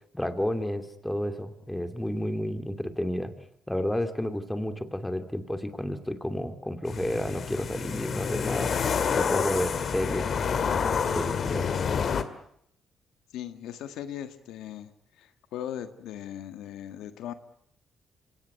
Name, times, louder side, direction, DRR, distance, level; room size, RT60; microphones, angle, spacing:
voice 1, 0.1-3.3 3.7-8.7 9.2-11.7, left 1 dB, 5° left, 8 dB, 2.6 m, -31 dB
sound 1, 6.9-12.2, left 6 dB, 55° left, 2.0 m, -28 dB
voice 2, 13.3-14.9 15.2-17.3, left 10 dB, 90° left, 9 dB, 1.6 m, -38 dB
26.0 x 18.0 x 9.5 m, 0.73 s
cardioid pair, 90°, 0 cm